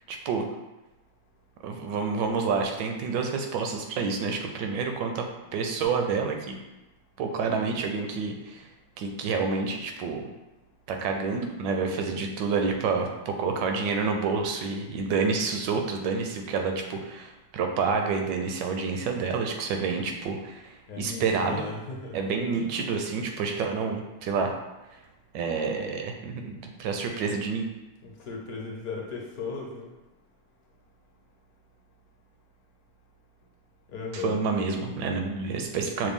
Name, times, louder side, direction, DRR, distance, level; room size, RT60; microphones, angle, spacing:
voice 1, 0.1-0.5 1.6-5.3 5.5-6.5 7.2-8.7 9.0-10.3 10.9-21.6 22.1-24.6 24.9-25.0 25.3-27.7 34.1-36.1, right 5 dB, 75° right, 4 dB, 1.2 m, -28 dB
voice 2, 20.9-22.2 28.0-29.9 33.9-34.4, left 4 dB, 60° left, -1 dB, 1.1 m, -36 dB
5.9 x 2.3 x 3.5 m, 1.0 s
omnidirectional pair, 2.0 m